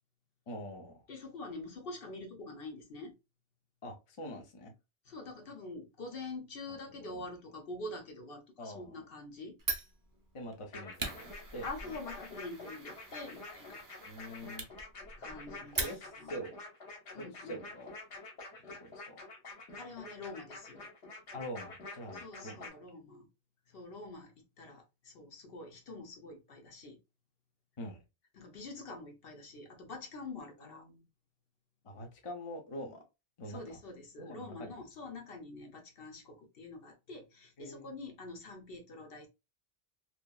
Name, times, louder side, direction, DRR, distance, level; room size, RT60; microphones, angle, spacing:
voice 1, 0.5-1.0 3.8-4.7 6.7-7.2 8.6-9.0 10.3-11.9 14.0-14.7 15.7-16.5 17.1-18.0 18.7-19.2 21.3-22.7 27.8-28.0 30.6-31.1 31.8-33.0 33.4-33.8 34.2-34.8 37.6-37.9, equal, 35° left, 0.6 m, -45 dB
voice 2, 1.1-3.1 5.1-9.5 11.6-13.8 15.2-16.5 17.1-17.6 19.8-20.9 22.1-23.3 23.7-27.0 28.3-30.8 33.4-39.3, left 2 dB, 60° left, 0.9 m, -46 dB
Fire, 9.6-16.4, right 3 dB, 25° right, 0.4 m, -42 dB
sound 1, 10.7-22.7, left 3 dB, 80° left, 1.3 m, -47 dB
2.9 x 2.4 x 2.3 m
omnidirectional pair, 1.1 m